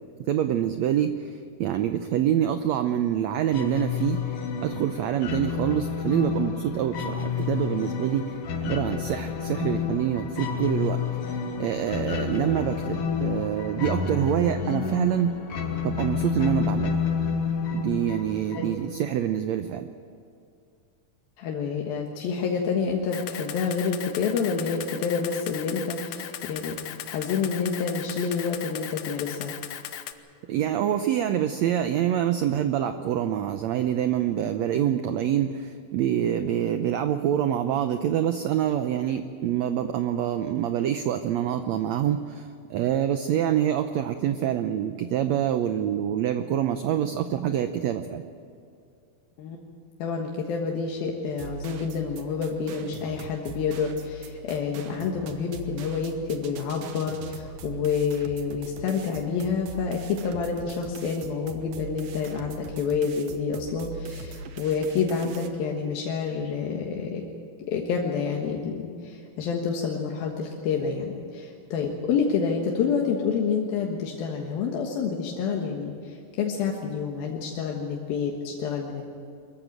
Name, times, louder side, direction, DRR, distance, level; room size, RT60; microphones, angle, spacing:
voice 1, 0.3-11.0 11.6-15.4 15.8-17.0 17.7-19.9 30.5-48.2, right 10 dB, 90° right, 9 dB, 1.5 m, -26 dB
sound 1, 3.5-19.0, left 6 dB, 55° left, 1.9 m, -30 dB
voice 2, 21.4-29.5 49.4-49.6 50.0-67.2 67.7-79.0, left 5 dB, 90° left, 0 dB, 3.3 m, -28 dB
Camera, 23.1-30.1, left 11 dB, 75° left, 1.6 m, -37 dB
sound 2, 51.3-65.5, right 3 dB, 70° right, 2.7 m, -41 dB
23.5 x 14.5 x 9.1 m, 2.4 s
omnidirectional pair, 4.1 m